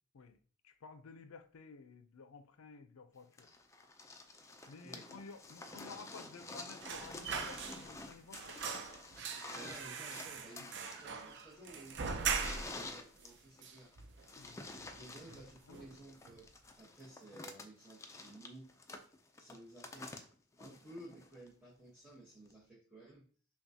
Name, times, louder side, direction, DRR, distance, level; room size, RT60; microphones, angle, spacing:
voice 1, 0.6-3.5 4.7-8.8 10.2-10.3 10.6-10.7 14.4-14.6 15.0-15.3 15.7-15.8, left 4 dB, 75° left, 10 dB, 0.5 m, -54 dB
sound 1, 3.4-21.5 22.5-22.6, left 2 dB, 15° left, 0.3 m, -50 dB
sound 2, 6.8-8.1 8.3-12.9 13.2-13.3 13.6-14.4 14.8-15.0 15.3-16.0 16.3-16.4, right 6 dB, 55° right, 0.5 m, -41 dB
voice 2, 9.5-13.9 15.0-16.4 16.8-18.7 19.4-20.2 20.6-23.2, right 1 dB, 5° right, -7 dB, 1.0 m, -55 dB
5.7 x 2.2 x 2.7 m, 0.42 s
head